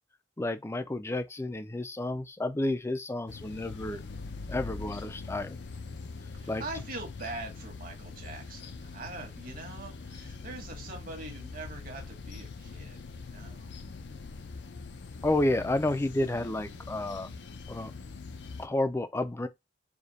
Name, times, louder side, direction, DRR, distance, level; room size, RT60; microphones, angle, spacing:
voice 1, 0.4-4.0 4.5-5.6 6.5-6.6 15.2-17.3 17.7-17.9 18.6-19.5, left 1 dB, 15° left, 0.4 m, -30 dB
sound 1, 3.3-18.7, left 4 dB, 80° left, 0.6 m, -43 dB
voice 2, 6.3-13.7, right 2 dB, 50° right, 1.4 m, -43 dB
4.9 x 2.2 x 4.1 m
head